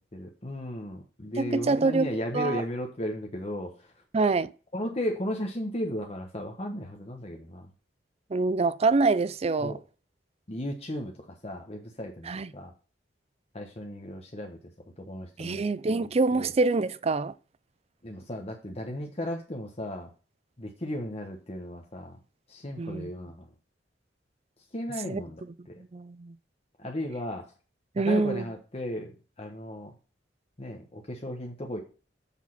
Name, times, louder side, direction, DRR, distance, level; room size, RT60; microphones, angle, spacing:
voice 1, 0.0-3.7 4.7-7.7 9.6-9.8 10.5-12.7 13.5-14.6 15.0-15.6 16.3-16.5 18.0-20.1 20.6-22.2 22.5-23.4 24.7-25.4 26.8-27.5 28.0-29.1 29.4-29.9 30.6-31.8, equal, 35° left, 1.2 m, -35 dB
voice 2, 1.4-2.6 4.1-4.5 8.3-9.8 12.2-12.5 15.4-17.3 22.8-23.1 25.0-25.5 25.9-26.3 28.0-28.5, right 3 dB, 35° right, 0.5 m, -26 dB
7.3 x 6.3 x 5.9 m
head